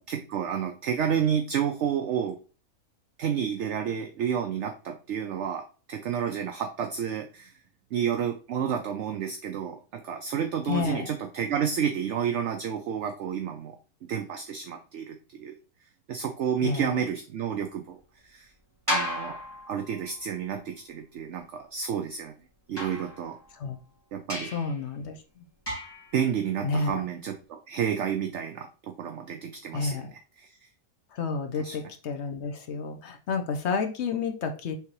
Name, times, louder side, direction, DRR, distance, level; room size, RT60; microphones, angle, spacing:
voice 1, 0.1-2.4 3.2-5.6 5.9-7.5 7.9-13.8 14.1-15.5 16.1-18.5 18.9-19.4 19.7-22.3 22.7-23.4 24.1-24.5 26.1-30.5 31.6-31.8, right 8 dB, 65° right, 4 dB, 0.8 m, -30 dB
voice 2, 10.7-11.1 16.6-17.0 23.5-23.8 24.5-25.2 26.6-27.0 29.7-30.1 31.1-34.7, left 4 dB, 55° left, 6 dB, 0.9 m, -30 dB
sound 1, 18.9-20.3 22.8-23.7 24.3-24.8 25.7-26.1, left 1 dB, 15° left, 1.7 m, -34 dB
4.7 x 3.4 x 3.0 m, 0.36 s
omnidirectional pair, 1.6 m